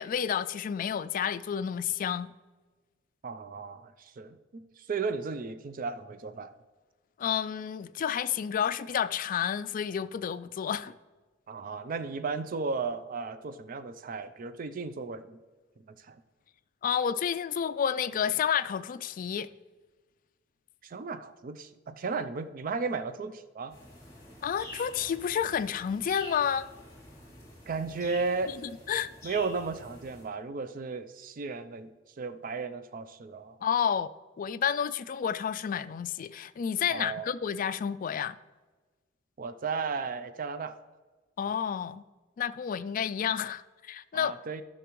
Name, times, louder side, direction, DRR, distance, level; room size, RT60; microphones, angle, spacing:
voice 1, 0.0-2.3 7.2-10.9 16.8-19.5 24.4-26.7 28.5-29.1 33.6-34.1 34.4-38.4 41.4-42.0 42.4-44.3, left 8 dB, 45° left, 0.3 m, -30 dB
voice 2, 3.2-6.5 11.5-15.4 15.8-16.2 20.8-23.7 27.7-28.6 29.2-33.6 36.9-37.3 39.4-40.8 44.1-44.6, right 4 dB, 45° right, 0.4 m, -35 dB
sound 1, 23.7-30.2, left 1 dB, 20° left, 2.7 m, -48 dB
11.5 x 5.9 x 3.1 m
head